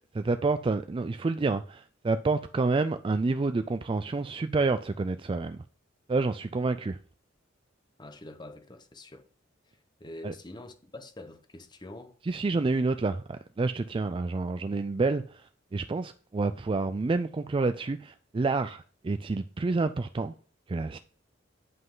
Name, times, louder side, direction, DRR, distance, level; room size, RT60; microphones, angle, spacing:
voice 1, 0.1-5.6 6.1-7.0 10.2-10.3 12.2-20.3 20.7-21.0, right 3 dB, 25° right, 0.3 m, -28 dB
voice 2, 8.0-9.3 10.0-12.2, left 1 dB, 25° left, 1.0 m, -45 dB
9.5 x 5.5 x 3.9 m
head